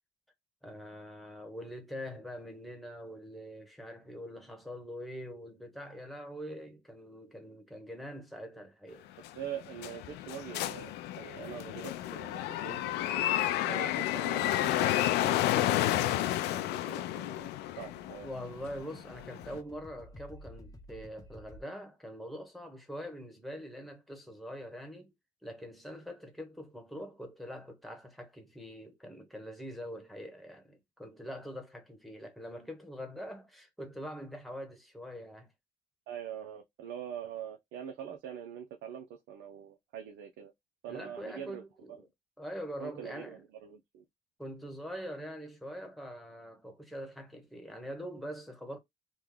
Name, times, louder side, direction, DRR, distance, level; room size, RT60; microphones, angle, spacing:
voice 1, 0.6-9.1 18.2-25.1 25.4-35.5 40.9-42.1 42.4-43.4 44.4-48.8, equal, ahead, 1.1 m, -44 dB
sound 1, 9.2-19.6, left 14 dB, 85° left, 0.5 m, -31 dB
voice 2, 9.3-13.3 13.7-18.3 36.1-40.5 40.8-42.0 42.8-44.1, right 9 dB, 80° right, 0.7 m, -44 dB
sound 2, 17.3-21.6, left 1 dB, 20° left, 0.8 m, -53 dB
3.1 x 2.3 x 3.7 m
cardioid pair, 110°, 17 cm